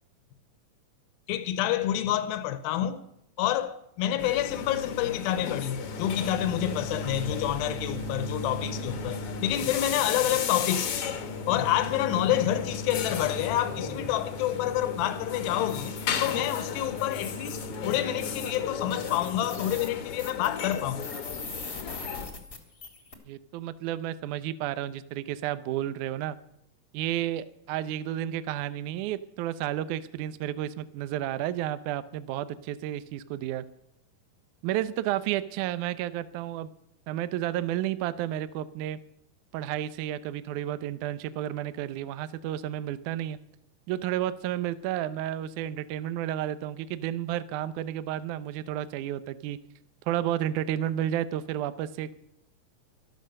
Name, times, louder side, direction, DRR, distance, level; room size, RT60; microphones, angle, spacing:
voice 1, 1.3-3.0 3.4-11.2 11.5-15.9 16.2-21.2, left 12 dB, 85° left, 2.7 m, -28 dB
sound 1, 4.2-22.3, left 7 dB, 65° left, 1.4 m, -36 dB
sound 2, 5.8-20.0, equal, 45° right, 1.3 m, -40 dB
sound 3, 17.1-17.9 18.5-18.6 18.9-23.1, left 3 dB, 30° left, 1.0 m, -41 dB
voice 2, 23.3-26.4 26.9-33.6 34.6-36.7 37.1-39.0 39.5-43.4 43.9-49.6 50.1-52.1, right 12 dB, 75° right, 1.9 m, -31 dB
12.5 x 12.0 x 6.5 m
omnidirectional pair, 4.2 m